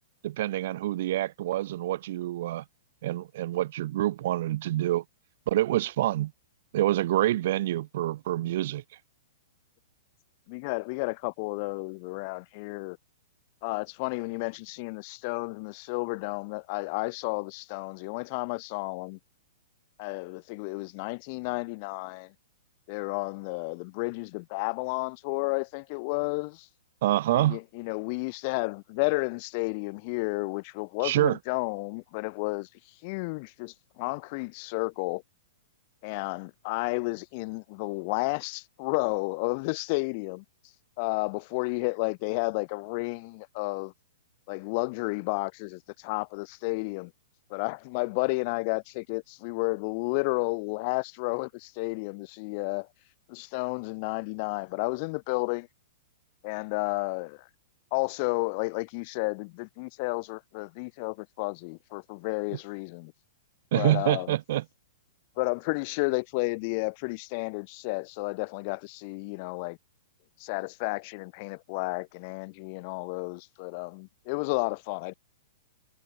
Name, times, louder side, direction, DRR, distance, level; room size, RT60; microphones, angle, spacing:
voice 1, 0.2-2.6 3.0-5.0 5.5-6.3 6.7-8.8 27.0-27.6 31.0-31.4 63.7-64.6, right 14 dB, 60° right, 6.2 m, -26 dB
voice 2, 10.5-13.0 13.6-19.2 20.0-22.3 22.9-26.7 27.3-32.7 33.0-35.2 36.0-40.4 41.0-43.9 44.5-47.1 47.5-52.9 53.3-55.7 56.4-57.4 57.9-63.1 63.7-64.3 65.4-69.8 70.4-75.1, left 30 dB, 45° left, 2.2 m, -32 dB
hypercardioid pair, 135°, 0 cm